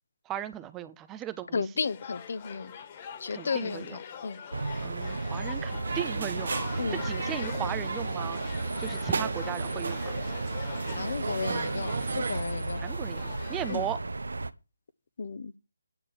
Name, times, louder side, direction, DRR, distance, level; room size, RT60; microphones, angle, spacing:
voice 1, 0.3-1.6 3.3-4.0 4.8-8.4 8.8-10.2 12.8-14.0, right 11 dB, 10° right, 0.5 m, -37 dB
voice 2, 1.5-2.8 3.2-4.4 6.8-7.0 10.8-12.8 13.7-13.9 15.2-15.5, left 5 dB, 55° left, 0.9 m, -34 dB
sound 1, 1.8-13.9, left 8 dB, 30° left, 1.8 m, -43 dB
sound 2, 4.5-14.5, right 2 dB, 85° right, 0.9 m, -34 dB
sound 3, 5.8-12.4, right 4 dB, 60° right, 1.4 m, -35 dB
9.9 x 6.1 x 8.7 m
figure-of-eight pair, 160°, 0 cm